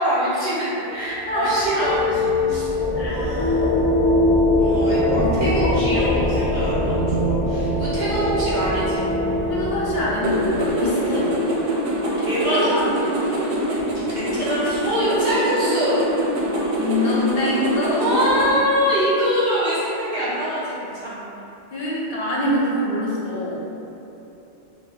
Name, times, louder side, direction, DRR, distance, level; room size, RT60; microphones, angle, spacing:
voice 1, 0.0-2.8 3.1-3.7 4.6-9.1 12.2-12.9 14.1-16.0 18.0-21.3, equal, 50° right, -11 dB, 0.9 m, -24 dB
sound 1, 1.0-11.5, left 1 dB, 25° left, 0.5 m, -22 dB
voice 2, 1.3-1.7 2.9-3.2 3.7-3.8 5.1-5.2 5.6-5.7 9.5-11.3 12.5-12.9 16.8-18.4 21.7-23.6, left 1 dB, 70° left, -5 dB, 0.8 m, -24 dB
sound 2, 10.2-18.5, right 1 dB, 80° right, 0.8 m, -24 dB
2.4 x 2.1 x 3.6 m, 2.9 s
omnidirectional pair, 1.1 m